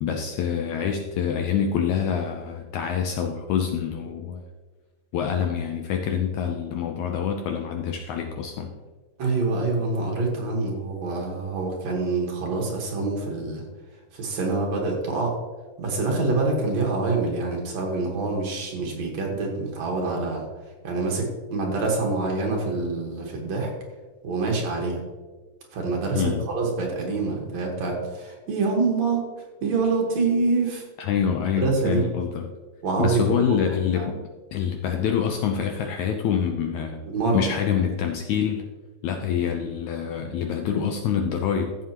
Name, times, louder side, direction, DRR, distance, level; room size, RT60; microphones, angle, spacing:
voice 1, 0.0-4.4 5.1-8.7 26.1-26.5 31.0-32.5 33.0-34.2 34.5-37.0 37.3-38.7 39.0-41.8, left 7 dB, 75° left, 4 dB, 1.8 m, -26 dB
voice 2, 9.2-13.6 14.1-15.4 15.8-20.4 20.8-23.7 24.2-25.0 25.7-29.2 29.6-30.8 31.6-32.0 32.8-33.6 33.9-34.1 37.1-37.4, right 3 dB, 60° right, 0 dB, 2.5 m, -26 dB
14.0 x 7.5 x 2.9 m, 1.3 s
omnidirectional pair, 3.9 m